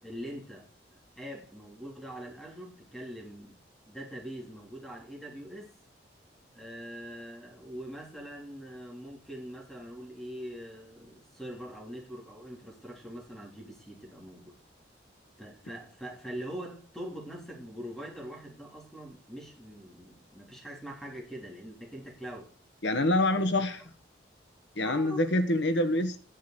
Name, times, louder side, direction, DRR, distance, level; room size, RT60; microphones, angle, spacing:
voice 1, 0.0-3.6 3.9-5.7 6.5-14.6 15.4-22.5 23.4-23.5 24.8-25.2, equal, ahead, 3.5 m, -43 dB
voice 2, 22.8-23.8 24.8-26.2, left 1 dB, 70° left, 1.4 m, -26 dB
10.5 x 9.9 x 6.9 m
head